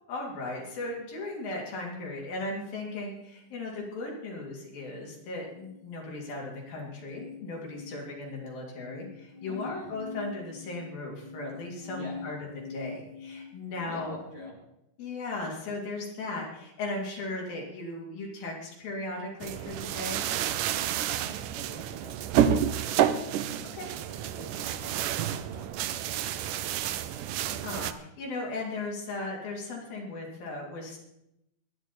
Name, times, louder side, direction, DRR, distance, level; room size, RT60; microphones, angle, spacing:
voice 1, 0.1-12.4 12.7-14.2 15.0-20.2 23.7-23.9 26.4-26.5 27.5-31.0, left 2 dB, 70° left, -2 dB, 4.9 m, -37 dB
sound 1, 4.9-14.5, left 5 dB, 90° left, 1.6 m, -45 dB
voice 2, 9.5-9.9 11.9-12.4 13.8-14.6 21.1-27.5, right 1 dB, 30° right, -3 dB, 2.6 m, -48 dB
sound 2, 19.4-27.9, right 10 dB, 85° right, 1.8 m, -29 dB
21.0 x 10.5 x 4.4 m, 0.83 s
omnidirectional pair, 4.4 m